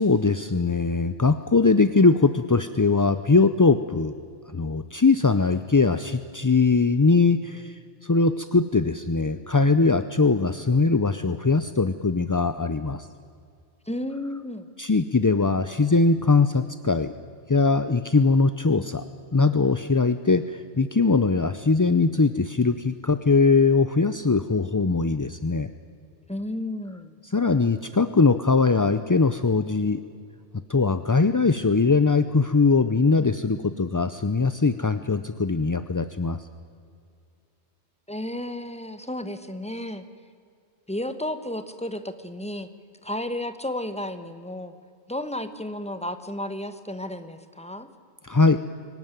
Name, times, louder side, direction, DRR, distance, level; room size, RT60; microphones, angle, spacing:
voice 1, 0.0-4.1 4.5-13.1 14.8-17.1 17.5-25.7 27.2-30.0 30.7-36.5 48.2-48.6, left 4 dB, 25° left, 11 dB, 0.4 m, -21 dB
voice 2, 13.9-14.7 26.3-27.2 38.1-40.0 40.9-42.7 43.0-44.7 45.1-47.9, left 1 dB, 5° left, 10 dB, 1.2 m, -32 dB
23.5 x 18.0 x 9.2 m, 2.3 s
omnidirectional pair, 1.2 m